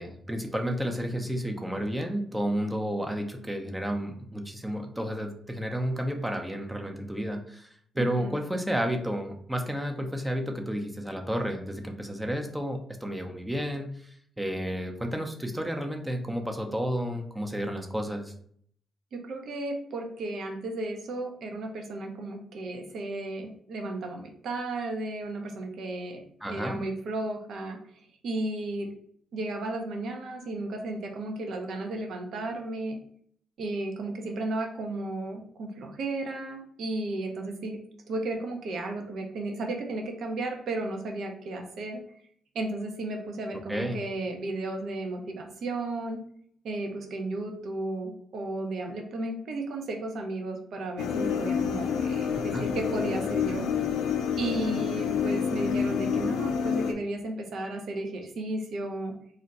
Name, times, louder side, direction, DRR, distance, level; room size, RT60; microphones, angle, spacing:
voice 1, 0.0-18.3 26.4-26.8 43.7-44.0 52.5-52.7, equal, 10° right, 4 dB, 0.5 m, -31 dB
voice 2, 8.0-8.3 19.1-26.2 26.5-27.8 28.2-28.9 29.3-33.0 33.6-37.8 38.1-42.0 42.5-46.2 46.6-53.7 54.4-59.1, right 2 dB, 70° right, 3 dB, 0.6 m, -34 dB
sound 1, 51.0-56.9, left 7 dB, 85° left, 0.3 m, -28 dB
2.5 x 2.1 x 4.0 m, 0.62 s
cardioid pair, 70°, 0 cm